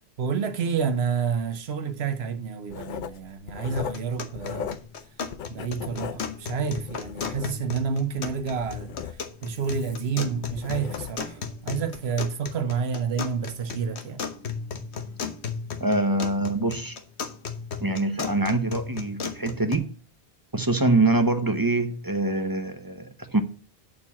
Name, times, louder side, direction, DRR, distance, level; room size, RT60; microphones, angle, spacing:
voice 1, 0.2-4.8 5.5-9.0 9.4-14.3, right 6 dB, 75° right, 1.1 m, -29 dB
Writing, 2.7-5.0 5.3-7.8 8.2-11.4 11.9-12.1, left 8 dB, 55° left, 0.6 m, -38 dB
sound 1, 3.8-19.8, left 6 dB, 80° left, 1.3 m, -36 dB
voice 2, 15.8-17.0 17.8-19.9 20.5-23.4, right 2 dB, 20° right, 0.8 m, -24 dB
8.7 x 4.5 x 7.2 m
omnidirectional pair, 1.1 m